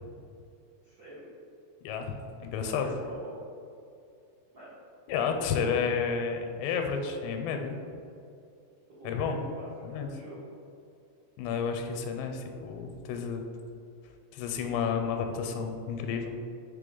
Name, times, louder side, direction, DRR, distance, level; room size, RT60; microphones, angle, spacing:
voice 1, 0.8-1.3 2.6-3.4 4.5-4.7 9.0-10.4, right 1 dB, 80° right, -12 dB, 1.0 m, -45 dB
voice 2, 1.8-2.1 2.4-2.9 5.1-7.8 9.0-9.4 9.8-10.1 11.4-13.4 14.3-16.3, left 6 dB, 85° left, 4 dB, 2.8 m, -31 dB
6.9 x 3.6 x 3.8 m, 2.5 s
omnidirectional pair, 5.0 m